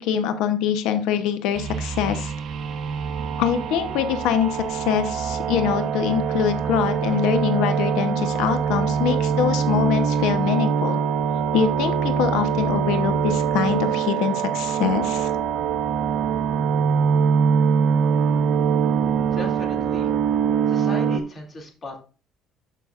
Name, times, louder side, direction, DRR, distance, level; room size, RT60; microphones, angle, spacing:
voice 1, 0.0-2.3 3.4-11.0 11.5-15.3, left 8 dB, 85° left, 8 dB, 0.9 m, -24 dB
sound 1, 1.6-21.2, right 7 dB, 50° right, 1.0 m, -23 dB
voice 2, 19.3-20.1 20.7-22.0, left 2 dB, 30° left, 1 dB, 2.5 m, -36 dB
12.5 x 5.8 x 2.5 m, 0.35 s
cardioid pair, 125°, 0 cm